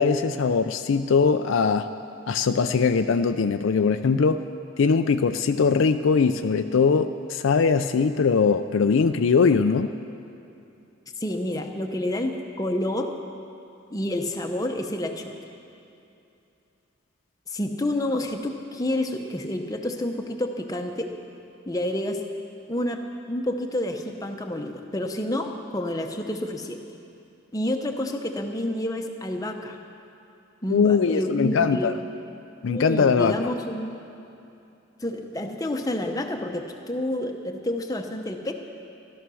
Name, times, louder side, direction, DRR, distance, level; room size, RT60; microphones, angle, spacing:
voice 1, 0.0-1.9 2.3-4.4 4.8-9.9 30.7-31.9 32.6-33.3, left 5 dB, 75° left, 8 dB, 0.4 m, -21 dB
voice 2, 11.2-13.1 13.9-15.3 17.5-21.1 21.7-22.2 22.7-23.0 23.3-26.8 27.5-29.8 30.6-31.9 32.6-34.0 35.0-38.5, left 1 dB, 20° left, 3 dB, 0.9 m, -29 dB
14.5 x 12.5 x 6.2 m, 2.7 s
head